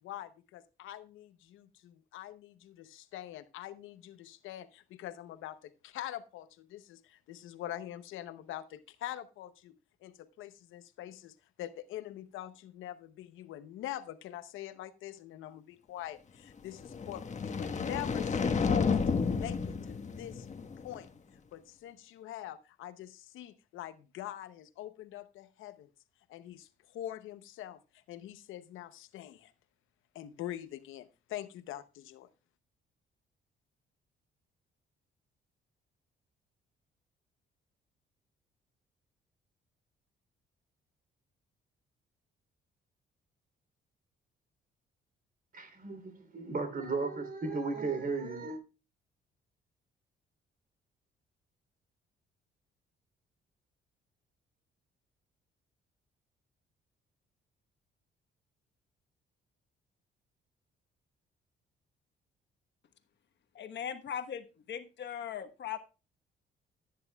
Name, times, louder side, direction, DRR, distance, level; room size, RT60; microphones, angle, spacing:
voice 1, 0.0-9.7 10.0-20.5 20.8-21.1 21.5-25.9 26.3-29.5 30.1-32.3, left 12 dB, 85° left, 0.8 m, -44 dB
sound 1, 16.7-21.0, left 5 dB, 35° left, 1.3 m, -31 dB
voice 2, 45.5-48.6, right 3 dB, 45° right, 3.2 m, -35 dB
voice 3, 63.5-65.8, left 9 dB, 65° left, 1.2 m, -39 dB
14.0 x 9.5 x 2.3 m
cardioid pair, 90°, 20 cm